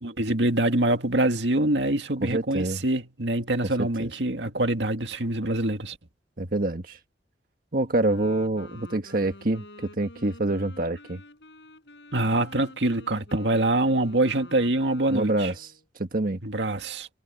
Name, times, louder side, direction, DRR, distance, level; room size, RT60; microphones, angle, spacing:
voice 1, 0.0-6.0 12.1-15.5 16.4-17.1, right 1 dB, 85° right, 2.2 m, -25 dB
voice 2, 2.2-2.8 4.0-4.1 6.4-7.0 7.7-11.2 15.1-16.4, right 2 dB, 55° right, 1.5 m, -26 dB
Wind instrument woodwind instrument, 7.9-15.8, left 2 dB, 90° left, 7.3 m, -48 dB
head